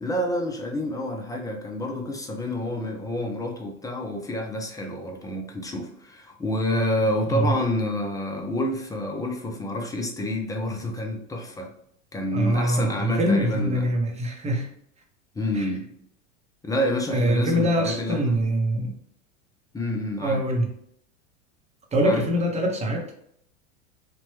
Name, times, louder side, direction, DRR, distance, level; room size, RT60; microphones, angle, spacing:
voice 1, 0.0-11.7 12.1-13.9 15.4-15.9 16.6-18.4 19.7-20.4 22.0-22.2, left 1 dB, 10° left, 2 dB, 0.4 m, -28 dB
voice 2, 12.3-14.7 15.5-15.7 17.1-18.9 20.2-20.7 21.9-23.1, equal, 15° right, 1 dB, 0.8 m, -24 dB
2.9 x 2.2 x 3.2 m, 0.70 s
hypercardioid pair, 95°, 40 cm